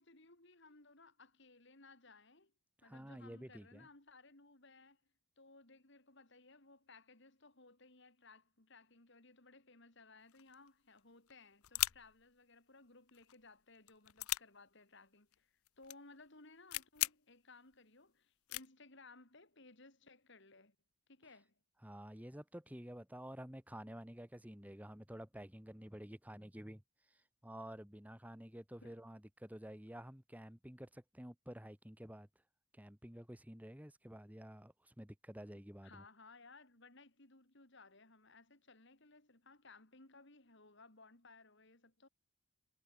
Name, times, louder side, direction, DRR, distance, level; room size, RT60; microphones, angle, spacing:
voice 1, 0.0-2.5 2.8-5.0 5.4-20.8 21.1-21.6 28.8-29.0 35.8-42.1, left 3 dB, 55° left, 3.0 m, -61 dB
voice 2, 2.8-3.9 21.8-26.8 27.1-32.3 32.7-36.0, equal, 5° right, 1.5 m, -51 dB
sound 1, 10.3-10.7 11.0-11.1 11.3-12.2 13.1-13.4 13.8-14.4 15.3-15.4 15.7-16.0 16.3-16.4 16.7-17.1 17.7-17.8 18.5-18.7, left 17 dB, 80° left, 0.6 m, -38 dB
head